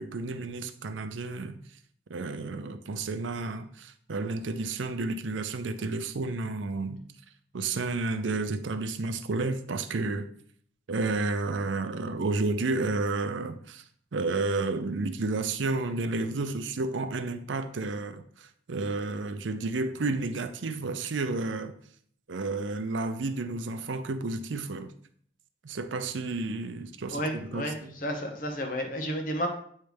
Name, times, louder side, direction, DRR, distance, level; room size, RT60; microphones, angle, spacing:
voice 1, 0.0-1.6 2.1-7.0 7.5-10.3 10.9-13.8 14.1-21.7 22.3-24.9 25.6-28.0, right 3 dB, 90° right, 0.6 m, -31 dB
voice 2, 27.1-29.5, equal, 45° left, 1.0 m, -32 dB
9.2 x 3.2 x 3.4 m
head